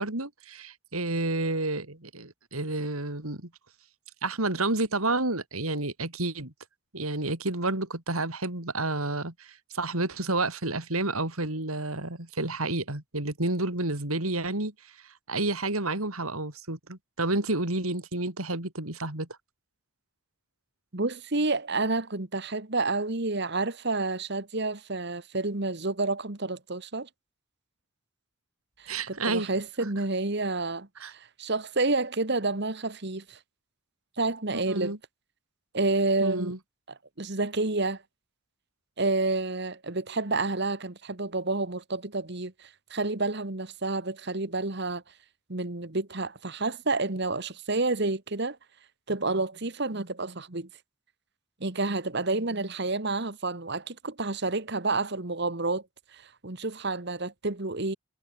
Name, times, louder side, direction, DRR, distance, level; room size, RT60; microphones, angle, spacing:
voice 1, 0.0-3.5 4.2-6.5 6.9-14.7 15.3-19.3 28.9-29.5 31.0-31.1 34.5-35.0 36.2-36.6, right 2 dB, 90° right, 4.7 m, -30 dB
voice 2, 20.9-27.1 28.8-33.4 34.2-34.9 35.7-36.5 37.2-38.0 39.0-45.0 45.5-48.6 49.1-50.7 51.6-55.8 56.1-58.0, right 3 dB, 50° right, 1.7 m, -29 dB
head